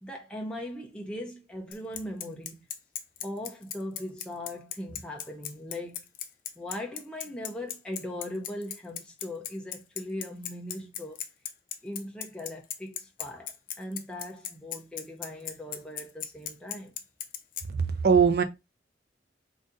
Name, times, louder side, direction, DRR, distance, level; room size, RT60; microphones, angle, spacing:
voice 1, 0.0-2.6 3.2-6.0 6.6-11.2 11.8-16.9, left 1 dB, 5° left, 0.6 m, -39 dB
Bicycle, 1.7-17.6, left 10 dB, 50° left, 0.5 m, -36 dB
voice 2, 17.7-18.4, right 6 dB, 60° right, 0.6 m, -21 dB
4.0 x 2.6 x 3.7 m
head